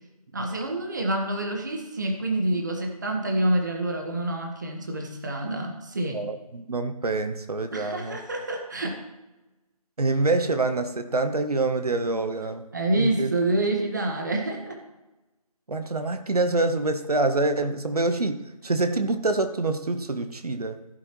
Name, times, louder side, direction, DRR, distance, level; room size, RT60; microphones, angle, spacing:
voice 1, 0.3-6.2 7.7-9.0 12.7-14.8, right 1 dB, 30° right, 3 dB, 1.4 m, -27 dB
voice 2, 6.1-8.2 10.0-12.7 12.9-13.3 15.7-18.4 18.6-20.8, right 2 dB, 80° right, 9 dB, 1.1 m, -26 dB
15.5 x 8.2 x 3.1 m, 1.1 s
figure-of-eight pair, 175°, 19 cm